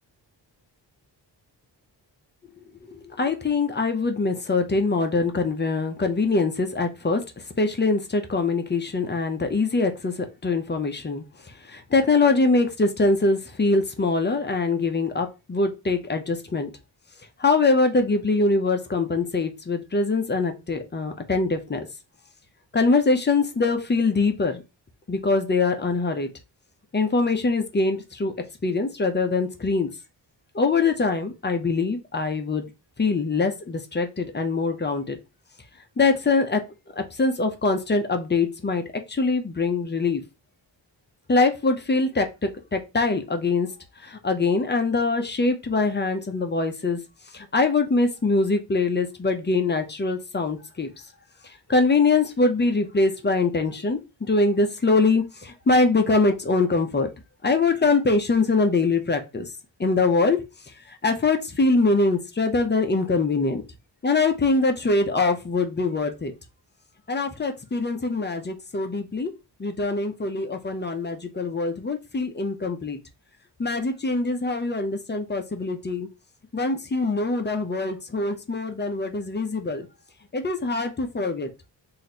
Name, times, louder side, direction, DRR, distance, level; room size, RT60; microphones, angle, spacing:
voice 1, 3.1-7.2 7.6-11.2 11.6-16.7 17.4-21.9 22.7-24.6 25.1-26.3 26.9-28.3 28.6-29.9 30.5-32.7 33.0-35.2 36.0-36.6 37.0-40.2 41.3-43.7 44.0-47.0 47.3-50.9 51.7-57.1 57.4-59.5 59.8-60.4 60.9-63.6 64.0-66.3 67.1-69.3 69.6-73.0 73.6-76.1 76.5-79.9 80.3-81.5, left 3 dB, 25° left, 6 dB, 0.7 m, -23 dB
3.1 x 2.8 x 4.1 m, 0.27 s
cardioid pair, 85°, 43 cm